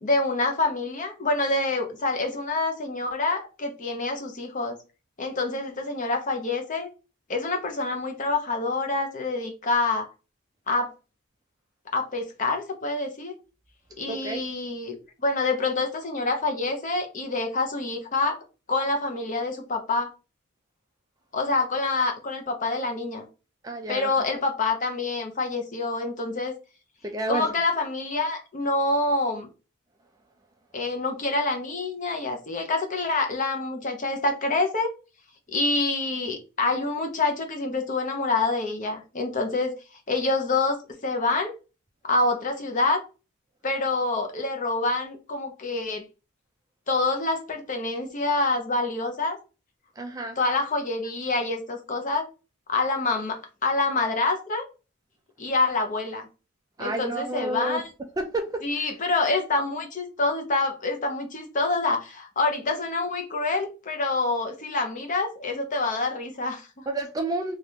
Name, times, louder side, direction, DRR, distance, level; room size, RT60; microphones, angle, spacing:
voice 1, 0.0-4.8 5.2-6.9 7.3-10.1 10.7-10.9 11.9-13.3 14.0-18.4 18.7-20.1 21.3-23.3 23.9-26.5 27.3-29.5 30.7-34.9 35.5-39.7 40.1-41.5 42.0-43.0 43.6-46.0 46.9-49.4 50.4-52.3 52.7-54.6 55.4-56.3 56.8-57.8 58.6-66.8, left 3 dB, 35° left, 0.7 m, -26 dB
voice 2, 14.1-14.4 23.6-24.1 27.0-27.5 50.0-50.4 56.8-57.8 58.2-58.9 66.9-67.6, right 2 dB, 15° right, 0.3 m, -30 dB
3.4 x 2.4 x 2.8 m
head